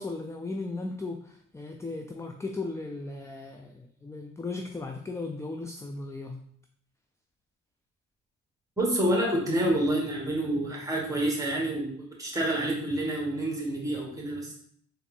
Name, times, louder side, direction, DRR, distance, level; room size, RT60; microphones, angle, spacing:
voice 1, 0.0-6.4, left 3 dB, 10° left, 4 dB, 0.3 m, -36 dB
voice 2, 8.8-14.5, right 1 dB, 10° right, -2 dB, 1.5 m, -28 dB
3.8 x 2.6 x 4.4 m, 0.63 s
cardioid pair, 90°, 30 cm